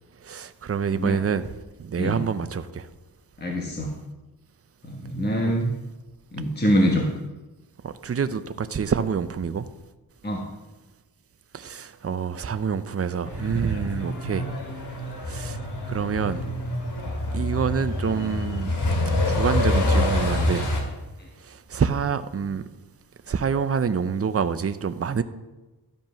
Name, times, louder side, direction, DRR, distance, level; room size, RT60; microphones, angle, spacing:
voice 1, 0.2-1.5 1.8-2.9 5.4-5.6 7.8-9.7 11.5-14.5 15.3-15.6 15.9-16.5 17.3-18.7 19.3-20.7 21.4-22.7 23.3-25.2, right 6 dB, 35° right, 12 dB, 0.6 m, -27 dB
voice 2, 3.4-3.9 4.8-5.7 6.3-7.1 10.2-10.4, equal, 25° left, 0 dB, 1.3 m, -24 dB
Truck, 13.2-20.8, left 1 dB, 75° left, 2.3 m, -26 dB
12.5 x 5.3 x 5.7 m, 1.1 s
wide cardioid pair, 80°, 40 cm